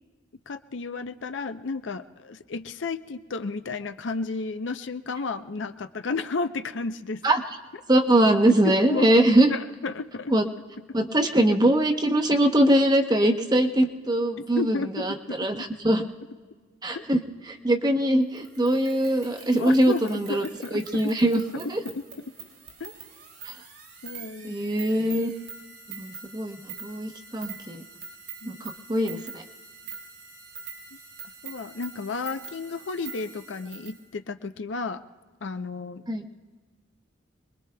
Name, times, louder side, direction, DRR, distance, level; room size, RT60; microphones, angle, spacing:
voice 1, 0.5-7.2 8.5-10.3 14.5-15.5 16.9-17.0 19.5-21.1 21.5-22.0 22.8-23.0 24.0-24.6 28.4-28.6 31.4-35.0 35.4-36.0, left 4 dB, 75° left, 9 dB, 0.6 m, -32 dB
voice 2, 7.9-9.5 10.3-10.5 10.9-16.0 16.8-17.2 17.5-20.5 20.7-21.8 23.5-23.6 24.4-25.3 25.9-27.8 28.5-28.6 28.9-29.4 36.1-36.2, right 1 dB, 20° right, 5 dB, 0.9 m, -22 dB
sound 1, 18.4-34.0, right 6 dB, 80° right, 3.9 m, -44 dB
27.0 x 21.0 x 2.3 m, 1.4 s
head